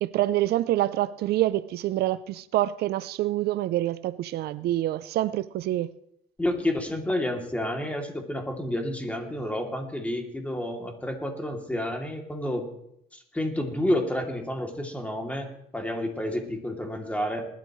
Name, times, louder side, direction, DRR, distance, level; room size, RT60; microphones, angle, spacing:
voice 1, 0.0-5.9, right 14 dB, 70° right, 0.5 m, -26 dB
voice 2, 6.4-12.7 13.1-17.5, left 1 dB, 10° left, 2.8 m, -30 dB
20.5 x 12.5 x 3.2 m
cardioid pair, 110°, 17 cm